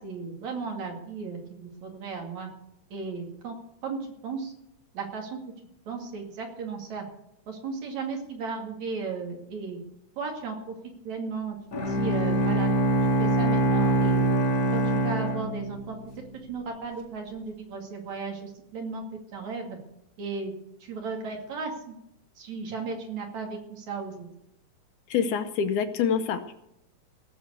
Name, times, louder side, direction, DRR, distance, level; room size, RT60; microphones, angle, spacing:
voice 1, 0.0-2.5 2.9-3.6 3.8-4.5 4.9-5.4 5.9-7.0 7.5-9.8 10.2-10.7 11.0-12.7 13.2-14.2 14.7-16.0 16.5-19.0 19.3-19.8 20.2-20.5 20.8-22.0 22.4-24.3, right 4 dB, 60° right, 2 dB, 3.6 m, -35 dB
Bowed string instrument, 11.7-16.1, right 2 dB, 40° left, 1.5 m, -24 dB
voice 2, 25.1-26.5, left 7 dB, 75° left, 8 dB, 2.2 m, -26 dB
17.5 x 7.2 x 8.2 m, 0.82 s
omnidirectional pair, 3.8 m